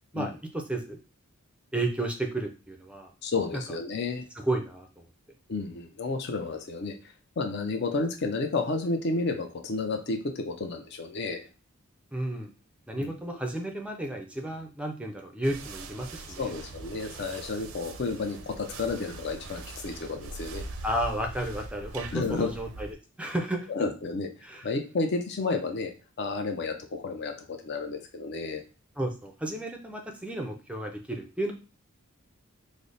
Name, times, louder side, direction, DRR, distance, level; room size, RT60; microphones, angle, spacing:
voice 1, 0.1-1.0 1.7-3.1 4.5-5.0 12.1-12.5 12.9-16.5 20.8-22.9 23.2-23.7 24.4-24.7 29.0-31.5, right 1 dB, 5° right, 3 dB, 0.4 m, -32 dB
voice 2, 3.2-4.3 5.5-11.5 13.0-13.4 16.4-20.6 22.1-22.5 23.7-24.3 24.6-25.9 26.2-28.6, left 3 dB, 50° left, 5 dB, 0.5 m, -31 dB
sound 1, 15.4-22.9, right 3 dB, 80° right, 0.5 m, -42 dB
3.3 x 2.0 x 3.9 m, 0.34 s
head